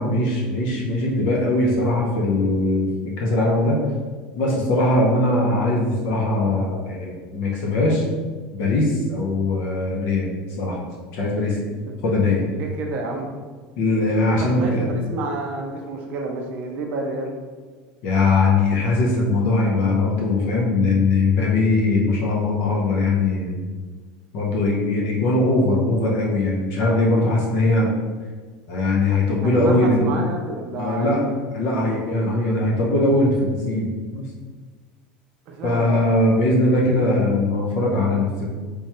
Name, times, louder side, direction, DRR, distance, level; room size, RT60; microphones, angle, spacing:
voice 1, 0.0-2.9 3.2-3.8 4.4-8.0 8.5-10.3 10.6-10.8 11.1-11.6 12.0-12.4 13.8-14.9 18.0-23.5 24.3-27.9 28.7-30.2 30.7-31.2 31.5-34.3 35.6-38.5, left 2 dB, 50° left, -2 dB, 0.6 m, -20 dB
voice 2, 12.5-13.3 14.4-17.3 29.4-31.3 35.5-36.1, right 3 dB, 40° right, 1 dB, 0.4 m, -29 dB
3.4 x 3.0 x 2.8 m, 1.4 s
cardioid pair, 170°, 4 cm